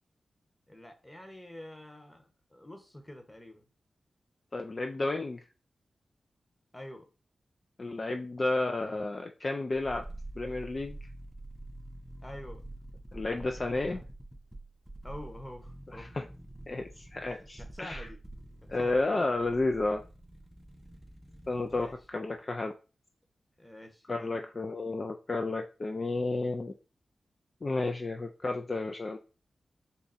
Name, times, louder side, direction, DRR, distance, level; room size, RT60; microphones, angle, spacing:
voice 1, 0.7-3.7 6.7-7.0 12.2-12.6 13.1-14.1 15.0-16.1 17.3-18.2 18.8-19.1 21.8-21.9 23.6-24.3, left 1 dB, 15° left, 5 dB, 1.1 m, -47 dB
voice 2, 4.5-5.4 7.8-10.0 10.4-11.0 13.1-14.0 15.9-16.2 16.7-18.1 18.7-20.0 21.5-22.7 24.1-26.7 27.6-29.2, left 2 dB, 45° left, 5 dB, 0.4 m, -32 dB
sound 1, 9.7-22.1 22.4-22.5, right 1 dB, 5° right, 0.6 m, -47 dB
4.0 x 2.4 x 4.1 m, 0.33 s
cardioid pair, 50°, 0 cm